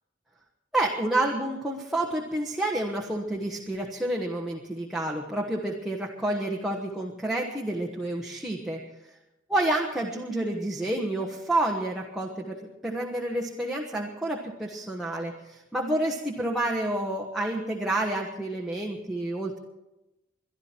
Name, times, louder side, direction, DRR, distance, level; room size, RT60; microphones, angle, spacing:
voice 1, 0.7-8.8 9.5-15.3 15.7-19.6, right 1 dB, ahead, -2 dB, 1.2 m, -29 dB
23.0 x 12.0 x 4.5 m, 0.96 s
head